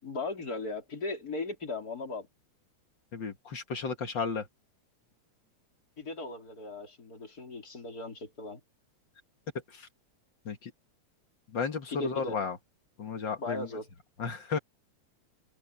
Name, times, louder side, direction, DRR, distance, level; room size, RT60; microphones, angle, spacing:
voice 1, 0.0-2.3 6.0-8.6 11.9-12.4 13.4-13.9, left 3 dB, 30° left, 3.9 m, -37 dB
voice 2, 3.1-4.5 10.5-10.7 11.5-12.6 13.0-13.7 14.2-14.6, left 5 dB, 45° left, 1.9 m, -33 dB
omnidirectional pair, 3.3 m